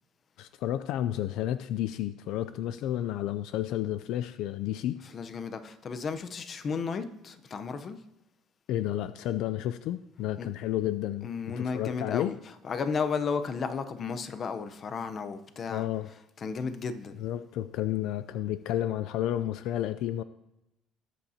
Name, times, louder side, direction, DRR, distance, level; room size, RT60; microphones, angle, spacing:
voice 1, 0.4-5.0 8.7-11.3 11.6-12.3 15.7-16.1 17.2-20.2, left 12 dB, 70° left, 0.4 m, -31 dB
voice 2, 5.0-8.0 10.4-10.5 11.2-15.9 16.1-17.2, left 5 dB, 35° left, 0.8 m, -34 dB
19.5 x 8.3 x 2.9 m
cardioid pair, 150°, 0 cm